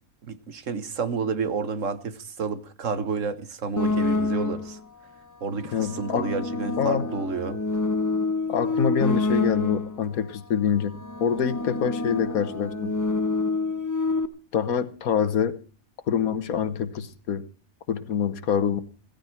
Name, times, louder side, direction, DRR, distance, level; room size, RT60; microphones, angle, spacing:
voice 1, 0.2-4.8 5.4-7.6, right 5 dB, 65° right, 1.5 m, -30 dB
sound 1, 3.8-4.8 5.6-10.1 10.8-14.3, left 3 dB, 20° left, 0.5 m, -27 dB
voice 2, 5.7-6.3 6.8-7.1 8.5-12.9 14.5-15.6 16.1-17.4 17.9-18.8, left 7 dB, 80° left, 1.6 m, -26 dB
15.5 x 15.0 x 4.4 m
omnidirectional pair, 1.5 m